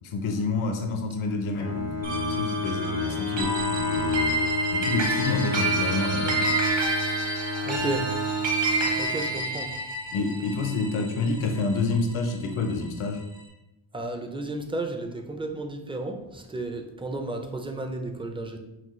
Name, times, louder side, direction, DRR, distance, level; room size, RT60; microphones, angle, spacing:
voice 1, 0.0-4.4 4.7-6.6 10.1-13.3, left 3 dB, 75° left, 5 dB, 0.8 m, -28 dB
Bowed string instrument, 1.5-9.8, left 2 dB, 90° left, 1.3 m, -30 dB
sound 1, 2.0-12.6, right 2 dB, 60° right, 1.1 m, -29 dB
voice 2, 7.6-8.1 8.8-9.7 13.9-18.6, right 2 dB, 10° right, 5 dB, 0.4 m, -33 dB
5.9 x 2.3 x 3.1 m, 0.95 s
cardioid pair, 95°, 50 cm